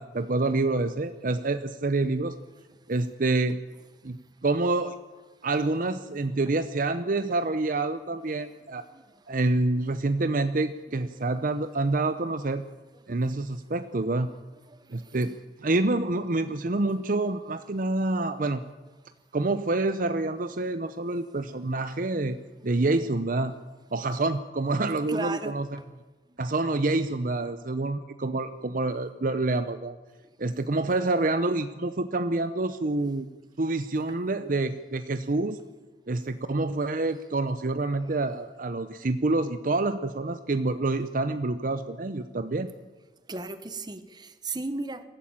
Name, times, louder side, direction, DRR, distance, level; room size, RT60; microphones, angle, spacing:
voice 1, 0.0-2.4 2.9-3.6 4.0-5.0 5.4-8.9 9.3-12.6 13.1-14.3 14.9-15.4 15.6-18.6 19.3-22.4 22.6-23.5 23.9-25.7 26.4-29.9 30.4-33.3 33.6-35.6 36.1-42.7, right 2 dB, 50° right, 11 dB, 0.7 m, -27 dB
voice 2, 11.2-11.6 14.7-15.2 25.1-25.6 38.1-38.2 43.3-45.0, right 3 dB, 25° right, 11 dB, 1.2 m, -36 dB
22.0 x 14.0 x 8.8 m, 1.2 s
head